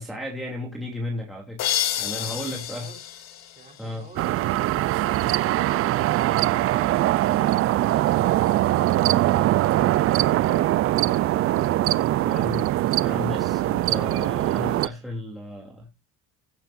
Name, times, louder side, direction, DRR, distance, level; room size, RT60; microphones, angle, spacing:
voice 1, 0.0-1.7 2.0-2.9 3.8-4.0 12.2-12.7 13.0-15.9, left 1 dB, ahead, 3.0 m, -34 dB
sound 1, 1.6-4.3, left 11 dB, 60° left, 2.1 m, -30 dB
voice 2, 2.1-3.0 3.6-4.4, right 4 dB, 25° right, 4.4 m, -48 dB
sound 2, 4.2-14.9, right 15 dB, 45° right, 0.5 m, -22 dB
15.0 x 10.5 x 2.6 m
cardioid pair, 165°, 31 cm